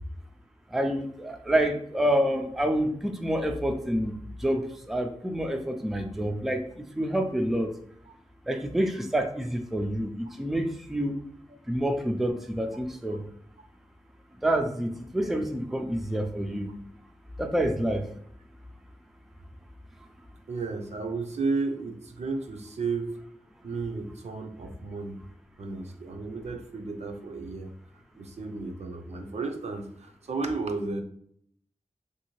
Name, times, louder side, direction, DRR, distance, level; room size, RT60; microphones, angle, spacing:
voice 1, 0.7-4.1 4.4-6.6 7.0-7.7 8.5-11.1 11.7-13.2 14.4-16.7 17.4-18.1, right 1 dB, ahead, 4 dB, 0.4 m, -27 dB
voice 2, 20.5-23.2 23.6-25.2 25.6-27.7 28.1-31.0, right 3 dB, 65° right, 4 dB, 0.5 m, -33 dB
3.1 x 2.7 x 2.9 m, 0.65 s
wide cardioid pair, 85°, 12 cm